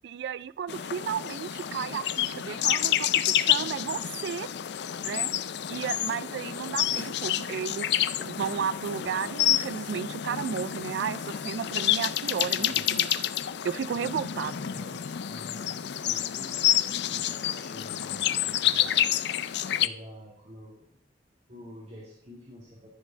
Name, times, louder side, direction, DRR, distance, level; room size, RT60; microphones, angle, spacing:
voice 1, 0.0-4.5 5.0-5.3 5.7-13.3 13.6-14.5, right 7 dB, 65° right, 17 dB, 0.3 m, -33 dB
sound 1, 0.7-19.9, left 11 dB, 65° left, 0.5 m, -29 dB
voice 2, 12.3-12.9 13.9-19.1 19.8-21.0 21.5-22.9, equal, 35° right, -4 dB, 2.7 m, -48 dB
13.5 x 8.8 x 3.7 m, 0.70 s
head